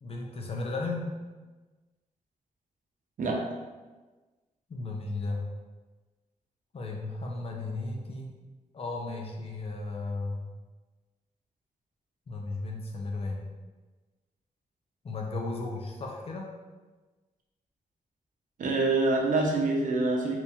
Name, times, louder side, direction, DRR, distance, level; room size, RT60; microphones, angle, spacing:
voice 1, 0.0-1.1 4.7-5.4 6.7-8.3 8.7-10.4 12.3-13.5 15.0-16.5, left 3 dB, 45° left, 0 dB, 0.6 m, -35 dB
voice 2, 18.6-20.4, right 3 dB, 75° right, 0 dB, 0.7 m, -26 dB
3.0 x 2.6 x 3.5 m, 1.2 s
wide cardioid pair, 130°, 14 cm